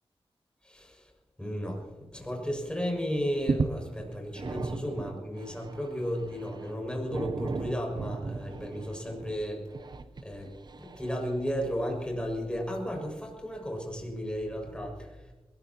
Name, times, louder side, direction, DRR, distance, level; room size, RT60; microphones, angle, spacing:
voice 1, 0.6-1.0 1.4-9.6 10.2-10.5 10.8-15.3, equal, 10° left, 0 dB, 6.4 m, -34 dB
sound 1, 2.6-2.8 3.1-11.7 12.4-12.5, right 4 dB, 45° right, 0.6 m, -37 dB
21.0 x 19.0 x 3.0 m, 1.2 s
wide cardioid pair, 75°, 10 cm